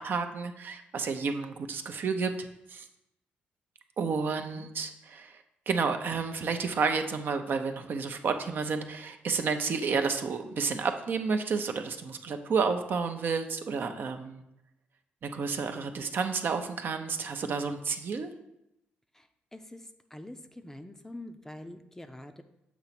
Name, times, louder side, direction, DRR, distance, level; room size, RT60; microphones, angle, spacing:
voice 1, 0.0-2.3 2.7-2.8 4.0-14.4 15.2-18.3, right 5 dB, 55° right, 6 dB, 0.6 m, -31 dB
voice 2, 19.1-22.4, left 1 dB, 10° left, 8 dB, 0.5 m, -46 dB
7.0 x 2.9 x 5.9 m, 0.86 s
cardioid pair, 75°, 4 cm